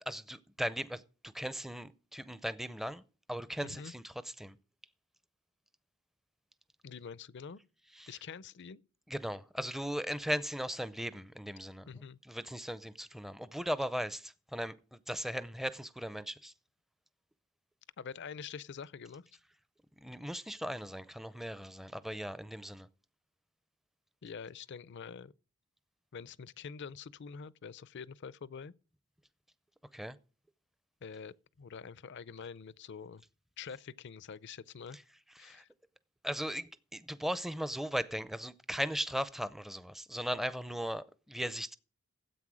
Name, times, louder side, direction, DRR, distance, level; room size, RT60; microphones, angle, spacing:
voice 1, 0.1-3.0 3.3-4.6 8.0-8.2 9.1-11.9 12.3-16.5 20.0-22.9 29.9-30.2 35.4-35.6 36.2-41.8, equal, ahead, 0.5 m, -38 dB
voice 2, 6.8-7.6 8.1-8.8 11.9-12.2 18.0-19.3 24.2-25.3 26.1-28.7 31.0-33.2 33.6-35.0 35.4-35.7, left 6 dB, 55° left, 0.5 m, -46 dB
13.5 x 8.2 x 6.2 m
head